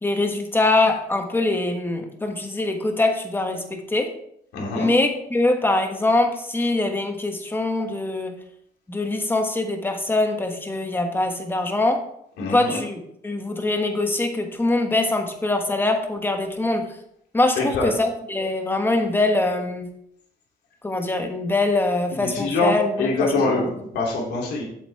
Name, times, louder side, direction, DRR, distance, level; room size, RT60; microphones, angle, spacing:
voice 1, 0.0-4.1 4.7-8.3 8.9-12.0 12.5-16.8 17.3-19.9 20.8-23.7, left 2 dB, 10° left, 4 dB, 1.4 m, -23 dB
voice 2, 4.5-4.9 12.4-12.8 17.6-17.9 22.2-24.6, left 3 dB, 80° left, -2 dB, 3.0 m, -24 dB
8.2 x 7.2 x 3.5 m, 0.72 s
cardioid pair, 110°, 17 cm